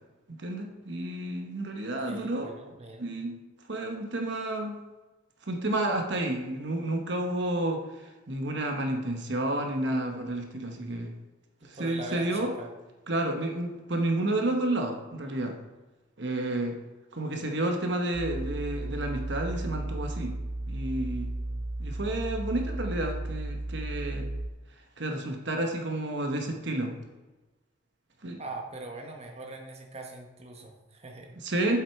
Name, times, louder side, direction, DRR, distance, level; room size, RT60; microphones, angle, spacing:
voice 1, 0.4-2.5 3.0-3.4 3.7-4.8 5.4-7.8 8.3-11.1 11.6-12.5 13.1-15.6 16.2-16.8 17.1-20.3 20.7-21.3 21.8-24.3 25.0-26.9 28.2-28.4 31.4-31.8, right 1 dB, 55° right, 4 dB, 1.0 m, -30 dB
voice 2, 2.1-3.1 11.6-12.7 28.4-31.4, right 2 dB, 30° right, 2 dB, 1.1 m, -42 dB
sound 1, 18.1-24.5, right 1 dB, 80° right, 0.7 m, -34 dB
8.4 x 7.7 x 4.7 m, 1.1 s
head